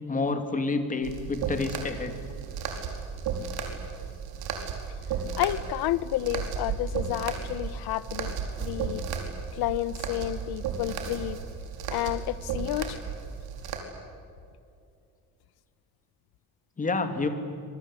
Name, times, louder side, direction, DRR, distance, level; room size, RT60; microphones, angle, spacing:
voice 1, 0.1-2.1 16.8-17.3, left 3 dB, 20° left, 2.6 m, -28 dB
sound 1, 1.0-13.8, right 6 dB, 80° right, 4.7 m, -34 dB
voice 2, 5.4-9.0 9.5-11.4 11.9-13.0, left 15 dB, 75° left, 1.1 m, -30 dB
26.5 x 22.5 x 9.9 m
cardioid pair, 160°, 37 cm